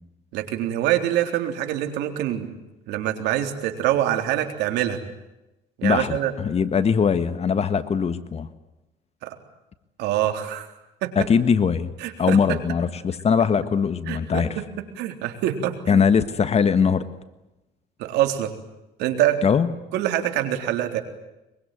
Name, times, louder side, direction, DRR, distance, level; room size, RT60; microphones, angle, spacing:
voice 1, 0.3-2.5 2.9-5.0 5.8-6.3 9.2-9.3 10.0-10.7 11.0-11.1 12.0-12.6 14.1-14.6 15.0-16.0 18.0-18.5 19.0-19.4 19.9-21.0, right 12 dB, 90° right, 6 dB, 3.8 m, -25 dB
voice 2, 5.8-8.5 11.1-11.9 12.2-14.6 15.9-17.1 19.4-19.7, left 6 dB, 40° left, 12 dB, 1.6 m, -21 dB
23.5 x 23.5 x 9.4 m, 0.95 s
cardioid pair, 110°, 17 cm